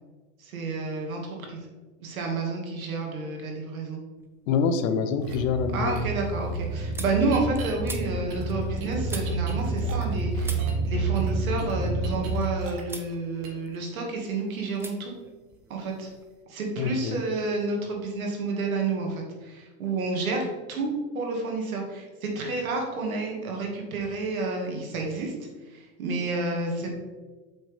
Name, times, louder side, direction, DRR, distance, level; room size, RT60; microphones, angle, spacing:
voice 1, 0.4-1.6 2.0-4.0 5.7-15.1 15.7-16.1 16.5-25.3 25.7-26.9, right 3 dB, 90° right, 1 dB, 2.1 m, -30 dB
sound 1, 4.2-4.7 5.1-10.1 10.4-12.4 12.8-13.1 13.5-14.2 14.7-14.9 15.2-16.3, right 2 dB, 5° right, 0.7 m, -44 dB
voice 2, 4.5-6.1 16.8-17.2, left 6 dB, 70° left, 9 dB, 1.0 m, -26 dB
sound 2, 5.2-12.3, right 3 dB, 20° left, 2.5 m, -29 dB
sound 3, 5.2-5.4 5.9-6.0 7.2-7.7 8.3-10.9 11.1-13.1 13.4-13.6, right 5 dB, 50° right, 1.9 m, -43 dB
7.4 x 5.9 x 3.5 m, 1.3 s
hypercardioid pair, 110°, 41 cm